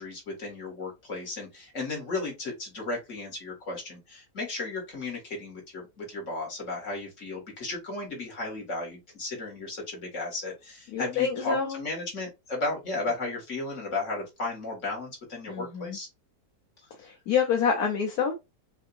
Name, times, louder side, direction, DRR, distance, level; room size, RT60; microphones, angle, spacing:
voice 1, 0.0-16.1, left 2 dB, 50° left, 2.4 m, -34 dB
voice 2, 10.9-11.8 15.5-16.0 17.0-18.4, left 6 dB, 70° left, 1.3 m, -27 dB
5.5 x 2.8 x 2.6 m
omnidirectional pair, 1.7 m